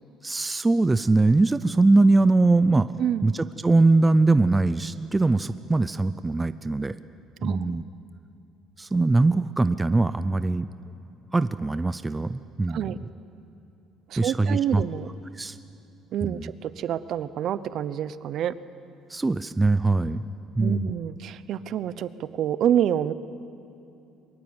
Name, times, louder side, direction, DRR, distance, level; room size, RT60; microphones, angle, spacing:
voice 1, 0.2-2.9 3.2-7.0 7.4-7.8 8.8-10.7 11.3-12.9 14.2-14.8 15.3-15.6 16.2-16.5 19.1-20.2 20.6-20.9, right 3 dB, 15° right, 13 dB, 0.5 m, -22 dB
voice 2, 3.0-3.3 7.4-7.7 12.7-13.0 14.1-15.1 16.1-18.5 20.6-23.1, right 10 dB, 55° right, 15 dB, 0.8 m, -27 dB
23.0 x 22.5 x 8.8 m, 2.7 s
cardioid pair, 140°, 0 cm